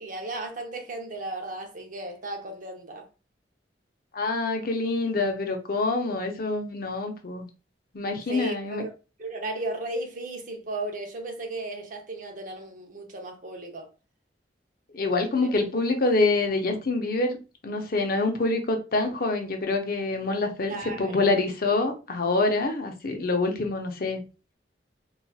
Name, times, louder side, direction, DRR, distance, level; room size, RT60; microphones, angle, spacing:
voice 1, 0.0-3.1 8.3-8.9 9.2-13.9 15.4-15.5 20.6-21.3, right 2 dB, 50° right, 0.7 m, -35 dB
voice 2, 4.1-7.5 7.9-8.8 14.9-24.2, left 3 dB, 55° left, 0.6 m, -26 dB
4.0 x 2.4 x 2.3 m
head